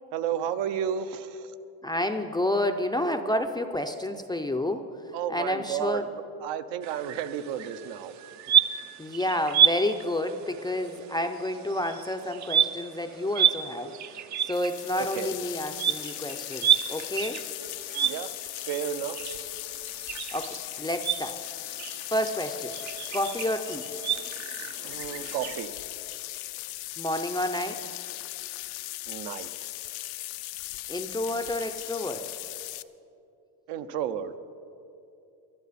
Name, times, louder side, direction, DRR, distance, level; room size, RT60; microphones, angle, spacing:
voice 1, 0.1-1.5 5.1-6.1 6.4-8.1 15.0-15.4 18.0-18.3 18.7-19.2 24.8-25.7 29.1-29.7 33.7-34.3, right 9 dB, 70° right, 10 dB, 0.8 m, -32 dB
voice 2, 1.8-4.9 5.3-6.1 9.0-17.4 20.3-21.4 22.1-22.8 23.1-23.9 27.0-27.9 30.9-32.3, left 1 dB, 10° left, 5 dB, 0.4 m, -30 dB
sound 1, 6.8-25.6, right 9 dB, 40° right, 0.5 m, -30 dB
sound 2, 14.5-32.8, left 18 dB, 80° left, 0.6 m, -38 dB
20.0 x 11.5 x 4.1 m, 2.7 s
cardioid pair, 120°, 45 cm